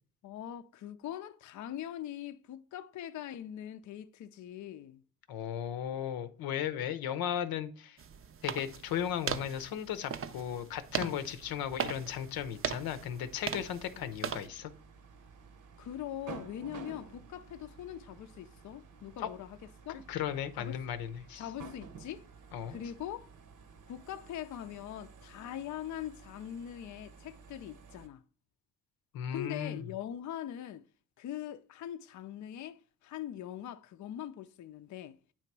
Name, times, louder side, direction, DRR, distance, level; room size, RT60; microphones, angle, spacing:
voice 1, 0.2-5.0 11.0-11.3 14.0-14.1 15.8-20.0 20.5-20.8 21.4-22.3 22.7-23.3 23.9-28.2 29.3-30.9 31.2-35.2, left 11 dB, 55° left, 0.5 m, -42 dB
voice 2, 5.3-8.0 8.4-14.7 19.2-19.3 19.9-21.4 22.5-22.7 29.1-29.8, left 9 dB, 85° left, 0.7 m, -36 dB
sound 1, 8.0-14.5, right 7 dB, 40° right, 0.5 m, -39 dB
sound 2, 11.4-28.1, right 5 dB, 60° right, 0.9 m, -53 dB
8.8 x 2.9 x 4.6 m
cardioid pair, 75°, 35 cm